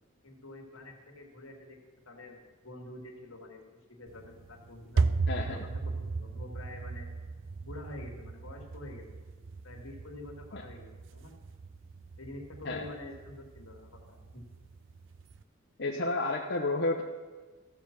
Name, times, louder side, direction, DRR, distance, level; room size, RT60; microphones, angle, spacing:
voice 1, 0.2-1.8 2.1-3.6 4.0-5.1 5.5-7.1 7.6-9.1 9.6-11.3 12.2-14.4, left 1 dB, 80° left, 2 dB, 2.1 m, -47 dB
sound 1, 4.1-15.4, right 4 dB, 65° right, 0.5 m, -36 dB
voice 2, 5.3-5.6 10.5-10.6 12.6-12.9 15.8-17.0, left 2 dB, 55° left, -1 dB, 1.0 m, -31 dB
14.5 x 7.0 x 5.9 m, 1.4 s
head